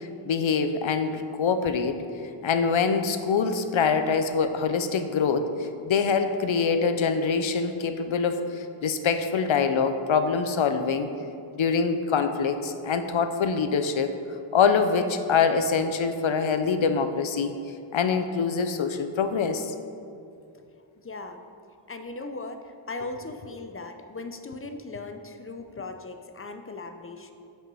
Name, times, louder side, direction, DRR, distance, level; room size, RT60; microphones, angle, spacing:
voice 1, 0.3-2.0 2.4-11.1 11.5-14.2 14.5-17.5 17.9-19.7, left 5 dB, 70° left, 9 dB, 0.6 m, -24 dB
voice 2, 2.0-2.7 20.5-21.4 21.9-27.3, left 3 dB, 30° left, 7 dB, 0.5 m, -39 dB
5.8 x 5.6 x 5.3 m, 2.5 s
wide cardioid pair, 70°, 49 cm